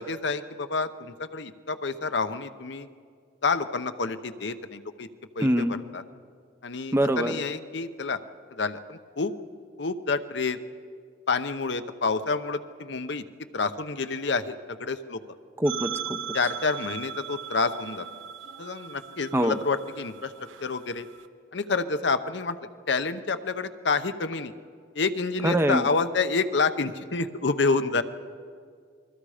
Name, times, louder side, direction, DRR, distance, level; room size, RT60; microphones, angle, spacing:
voice 1, 0.0-2.9 3.4-5.1 5.4-6.0 6.6-8.2 8.6-9.3 9.8-10.6 11.3-13.2 13.5-15.2 16.3-18.1 18.6-20.3 20.6-21.1 21.5-22.6 22.9-24.5 24.9-28.0, left 4 dB, 65° left, 10 dB, 0.9 m, -28 dB
voice 2, 5.4-5.7 6.9-7.3 15.6-16.2 19.3-19.6 25.4-25.8, right 1 dB, 15° right, 9 dB, 0.7 m, -24 dB
sound 1, 15.6-21.3, right 8 dB, 85° right, 0.8 m, -38 dB
28.5 x 22.0 x 5.0 m, 2.1 s
head